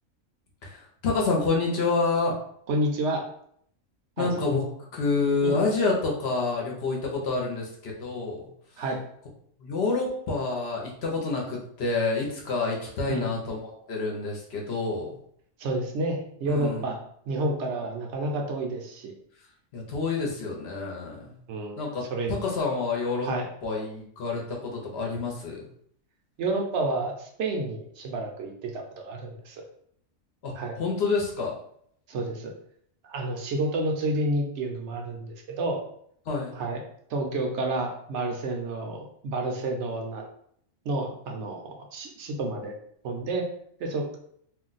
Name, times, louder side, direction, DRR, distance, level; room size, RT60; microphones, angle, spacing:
voice 1, 0.6-2.3 4.2-4.6 4.9-8.5 9.6-15.2 16.5-16.9 19.7-21.4 21.8-23.3 23.6-25.6 30.4-30.5 30.8-31.5 36.3-36.5, left 3 dB, 60° left, -1 dB, 0.8 m, -28 dB
voice 2, 2.7-3.2 4.2-4.3 5.4-5.6 8.8-9.0 13.1-13.3 15.6-17.0 17.3-19.1 21.5-21.8 22.1-22.4 23.2-23.5 26.4-29.6 30.5-30.8 32.1-32.5 33.1-35.8 36.5-36.8 37.1-40.2 40.8-42.8 43.0-43.5 43.8-44.2, right 2 dB, 70° right, 2 dB, 0.8 m, -30 dB
2.5 x 2.1 x 3.8 m, 0.67 s
omnidirectional pair, 1.3 m